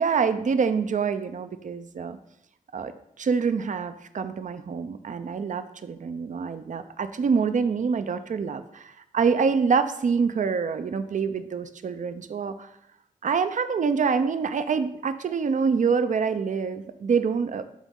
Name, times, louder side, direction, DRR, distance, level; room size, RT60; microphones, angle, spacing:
voice 1, 0.0-2.2 2.7-2.9 3.2-12.7 13.2-17.6, right 5 dB, 60° right, 10 dB, 0.6 m, -26 dB
11.0 x 4.1 x 3.8 m, 0.76 s
cardioid pair, 70°, 15 cm